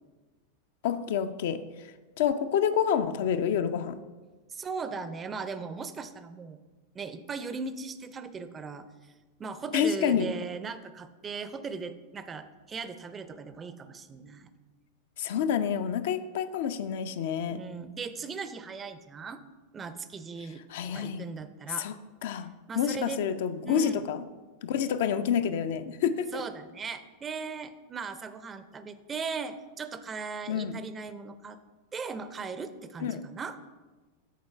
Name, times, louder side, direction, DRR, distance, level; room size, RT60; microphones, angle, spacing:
voice 1, 0.8-1.9 2.2-4.0 9.7-10.3 15.2-17.6 20.7-21.2 21.8-22.0 22.2-24.2 24.6-26.4 30.5-30.8 33.0-33.2, left 8 dB, 55° left, 10 dB, 0.4 m, -28 dB
voice 2, 4.5-6.6 6.9-8.9 9.4-14.5 17.5-19.4 19.7-21.9 22.7-23.2 23.6-24.0 26.3-31.6 31.9-33.6, right 5 dB, 20° right, 12 dB, 0.5 m, -38 dB
7.5 x 4.3 x 5.6 m, 1.3 s
figure-of-eight pair, 90°, 0 cm